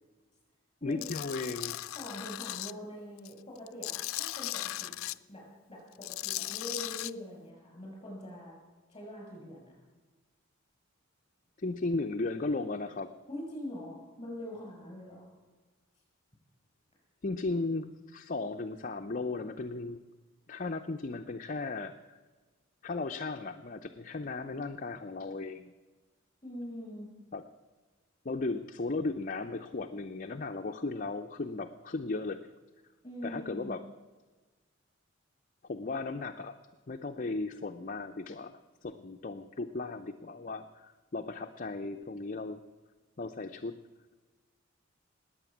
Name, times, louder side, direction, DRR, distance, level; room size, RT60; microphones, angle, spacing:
voice 1, 0.8-1.8 11.6-13.1 17.2-20.0 20.5-22.2 22.8-25.7 27.3-27.4 28.2-32.4 33.2-33.8 35.6-36.5 36.9-42.6 43.2-43.8, left 3 dB, 40° left, 5 dB, 0.6 m, -36 dB
Tools, 1.0-2.7 3.2-5.2 5.9-7.1, left 16 dB, 90° left, 0.4 m, -37 dB
voice 2, 1.9-4.9 5.3-8.5 8.9-9.7 13.3-15.2 26.4-27.1 33.0-33.7, left 1 dB, 25° left, -1 dB, 6.5 m, -43 dB
20.0 x 8.6 x 7.2 m, 1.3 s
head